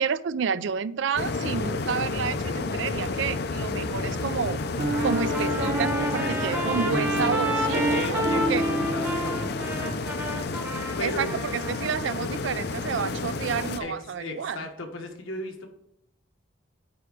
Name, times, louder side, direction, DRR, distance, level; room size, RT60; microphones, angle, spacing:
voice 1, 0.0-4.6 5.0-8.6 11.0-14.6, right 6 dB, 65° right, 0.4 m, -30 dB
sound 1, 1.2-13.8, left 3 dB, 50° left, 0.5 m, -31 dB
Piano, 4.8-10.1, right 1 dB, 40° right, 1.0 m, -29 dB
Trumpet, 4.9-11.9, equal, 10° right, 0.9 m, -32 dB
voice 2, 6.0-7.2 7.7-10.1 11.0-11.3 12.1-12.2 13.8-15.7, left 2 dB, 85° left, 1.4 m, -37 dB
9.2 x 3.5 x 6.2 m
head